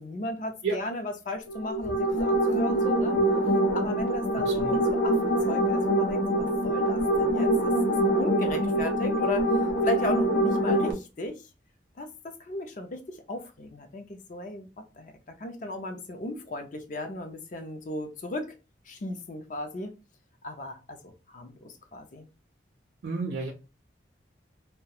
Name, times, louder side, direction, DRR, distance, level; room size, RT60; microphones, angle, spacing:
voice 1, 0.0-3.1 3.7-7.7 8.2-9.5 9.8-11.4 12.0-18.6 18.9-20.0 20.4-22.3, left 1 dB, 45° left, 0.4 m, -36 dB
sound 1, 1.5-10.9, right 1 dB, 90° left, 0.7 m, -25 dB
voice 2, 4.4-4.8 23.0-23.5, right 4 dB, 70° right, 0.4 m, -31 dB
2.3 x 2.1 x 2.7 m
head